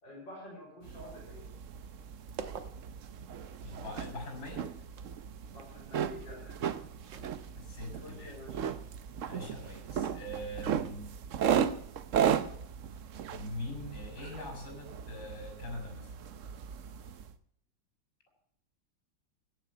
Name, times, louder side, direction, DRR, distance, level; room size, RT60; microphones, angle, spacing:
voice 1, 0.0-1.5 5.5-6.6 7.1-7.2 7.9-8.7, left 1 dB, 70° left, -2 dB, 4.8 m, -49 dB
sound 1, 0.8-17.3, right 8 dB, 55° right, 0.9 m, -36 dB
sound 2, 1.0-11.8, right 7 dB, 85° right, 1.9 m, -53 dB
voice 2, 3.6-4.7 7.6-8.4 9.3-11.1 13.3-16.2, left 1 dB, 50° left, 3 dB, 7.0 m, -42 dB
16.5 x 7.6 x 7.9 m, 0.68 s
omnidirectional pair, 2.0 m